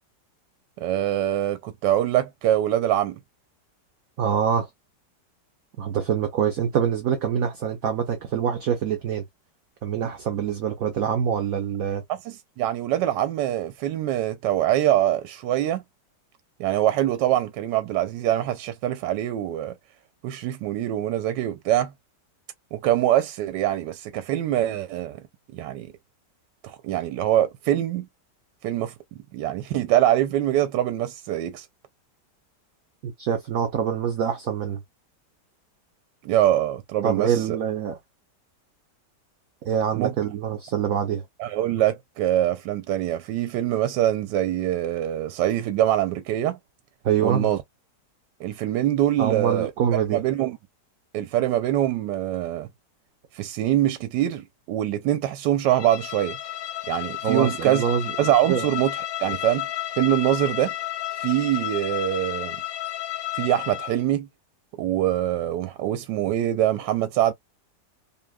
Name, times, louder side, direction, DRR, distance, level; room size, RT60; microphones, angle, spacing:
voice 1, 0.8-3.2 12.1-15.8 16.6-19.8 20.2-21.9 22.7-25.2 25.5-25.9 26.6-28.1 28.6-28.9 29.3-31.7 36.2-37.6 39.9-40.1 41.4-46.6 47.2-47.6 48.4-49.7 50.1-50.6 51.1-52.7 53.3-56.4 56.9-57.8 58.2-58.9 59.2-59.7 60.0-60.7 61.2-62.6 63.3-64.3 64.8-67.3, right 12 dB, 90° right, 1.2 m, -24 dB
voice 2, 4.2-4.7 5.8-9.2 9.8-12.0 33.0-34.8 37.0-38.0 39.6-41.2 47.0-47.5 49.2-50.2 57.2-58.1 58.5-58.7, right 8 dB, 60° right, 1.2 m, -25 dB
Bowed string instrument, 55.7-64.0, left 14 dB, 70° left, 0.9 m, -32 dB
5.4 x 2.3 x 2.3 m
omnidirectional pair, 1.8 m